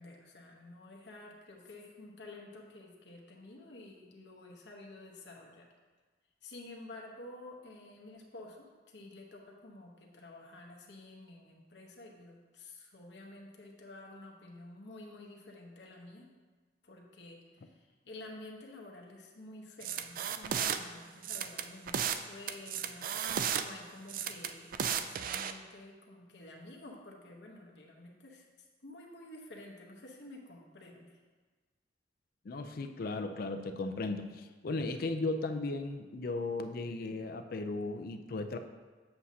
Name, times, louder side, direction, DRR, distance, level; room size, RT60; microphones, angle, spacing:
voice 1, 0.0-5.7 6.4-16.3 16.8-28.4 28.8-31.2, left 2 dB, 80° left, 0 dB, 1.0 m, -51 dB
sound 1, 19.8-20.8 21.2-22.2 22.5-23.6 24.1-25.5, right 8 dB, 50° right, 0.3 m, -34 dB
voice 2, 32.4-38.6, left 3 dB, 55° left, 7 dB, 0.4 m, -36 dB
7.6 x 6.2 x 2.8 m, 1.4 s
head